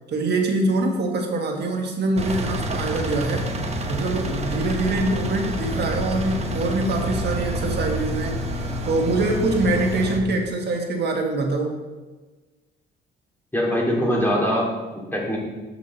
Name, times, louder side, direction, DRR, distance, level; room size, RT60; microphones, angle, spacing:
voice 1, 0.1-3.5 3.9-8.4 8.8-11.7, right 2 dB, 60° right, 1 dB, 1.6 m, -24 dB
Engine, 2.2-10.2, equal, 35° right, 1.0 m, -28 dB
voice 2, 13.5-15.4, equal, 10° left, -3 dB, 2.4 m, -23 dB
7.2 x 6.0 x 4.2 m, 1.3 s
cardioid pair, 90°, 20 cm